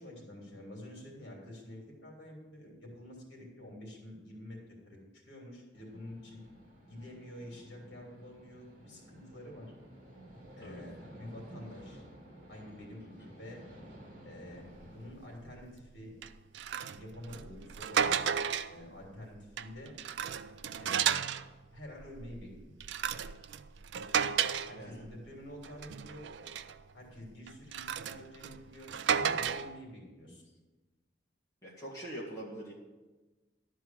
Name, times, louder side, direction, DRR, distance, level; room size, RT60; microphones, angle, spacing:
voice 1, 0.0-4.6 4.8-6.4 6.9-9.7 10.5-12.0 12.5-13.6 14.2-16.1 16.9-18.2 18.7-19.9 20.8-21.2 21.7-22.8 24.6-26.3 26.9-30.4, left 1 dB, 60° left, -2 dB, 3.1 m, -48 dB
sound 1, 5.7-15.2, right 1 dB, 40° right, 2.3 m, -53 dB
sound 2, 14.8-15.0 15.4-15.7 16.2-18.9 19.4-21.5 22.0-25.3 25.6-26.8 27.5-29.8, right 8 dB, 60° right, 0.4 m, -34 dB
voice 2, 24.7-25.0 31.6-32.7, right 1 dB, 15° left, -7 dB, 2.0 m, -43 dB
12.0 x 4.6 x 7.5 m, 1.2 s
head